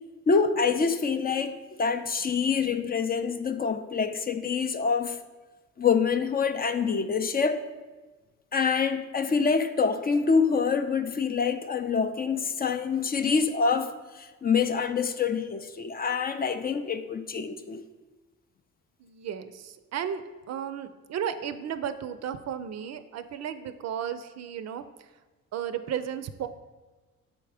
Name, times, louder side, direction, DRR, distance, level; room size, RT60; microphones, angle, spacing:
voice 1, 0.3-5.2 5.8-7.6 8.5-17.8, left 5 dB, 30° left, 0.4 m, -26 dB
voice 2, 19.0-20.2 20.5-24.8 25.5-26.5, right 9 dB, 60° right, 0.5 m, -34 dB
7.0 x 3.5 x 4.9 m
cardioid pair, 90°, 30 cm